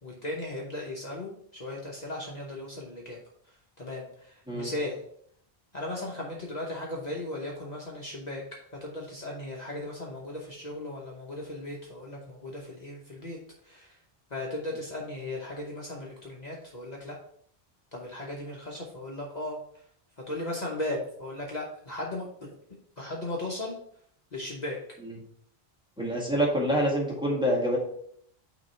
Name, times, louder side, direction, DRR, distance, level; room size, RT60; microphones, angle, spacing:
voice 1, 0.0-3.2 3.8-5.0 5.7-13.4 13.6-14.0 14.3-17.2 17.9-19.8 20.3-22.5 23.0-23.8 24.3-24.8, left 1 dB, 45° left, -3 dB, 1.1 m, -37 dB
voice 2, 26.0-27.8, equal, 5° right, -4 dB, 1.7 m, -26 dB
6.1 x 3.0 x 5.4 m, 0.66 s
omnidirectional pair, 1.0 m